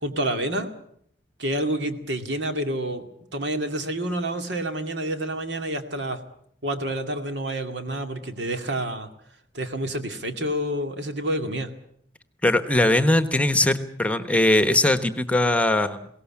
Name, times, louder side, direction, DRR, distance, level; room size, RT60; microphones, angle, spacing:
voice 1, 0.0-0.7 1.4-3.0 3.3-6.2 6.6-9.1 9.5-11.7, right 1 dB, 80° right, 6 dB, 2.3 m, -28 dB
voice 2, 12.4-16.1, left 1 dB, 10° left, 10 dB, 1.1 m, -20 dB
22.0 x 17.5 x 8.7 m, 0.69 s
head